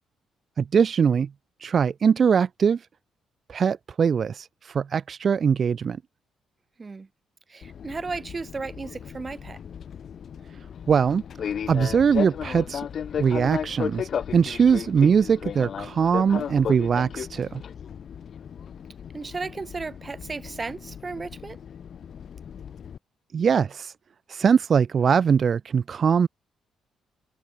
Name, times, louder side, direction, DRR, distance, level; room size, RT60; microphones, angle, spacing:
voice 1, 0.6-1.3 1.6-2.8 3.5-6.0 10.9-11.2 11.7-12.9 13.2-17.6 23.3-23.9 24.3-26.3, right 6 dB, 50° right, 2.3 m, -21 dB
voice 2, 7.5-9.6 19.1-21.6, right 4 dB, 30° right, 3.5 m, -34 dB
Fixed-wing aircraft airplane, 7.6-23.0, left 8 dB, 55° left, 1.7 m, -35 dB
cardioid pair, 90°, 0 cm